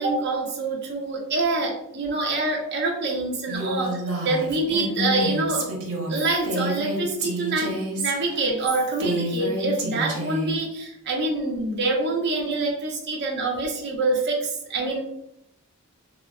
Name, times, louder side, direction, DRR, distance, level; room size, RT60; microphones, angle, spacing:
voice 1, 0.0-3.9 4.2-5.7 6.1-15.0, right 2 dB, 50° right, 0 dB, 0.7 m, -26 dB
Female speech woman speaking, 3.5-10.5, right 1 dB, 85° right, 0.8 m, -29 dB
4.0 x 2.0 x 2.3 m, 0.75 s
head